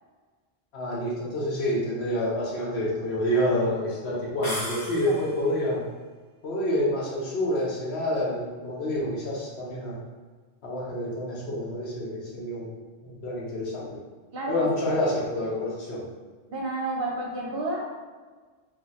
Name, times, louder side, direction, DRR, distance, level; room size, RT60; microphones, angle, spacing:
voice 1, 0.7-5.9 6.4-10.0 10.6-12.7 13.0-14.0 14.5-16.1, left 1 dB, 75° left, -5 dB, 1.2 m, -28 dB
sound 1, 4.4-5.5, left 1 dB, 45° left, 1.2 m, -35 dB
voice 2, 16.5-17.9, right 2 dB, 65° right, -3 dB, 1.0 m, -30 dB
3.1 x 2.3 x 4.0 m, 1.4 s
omnidirectional pair, 1.1 m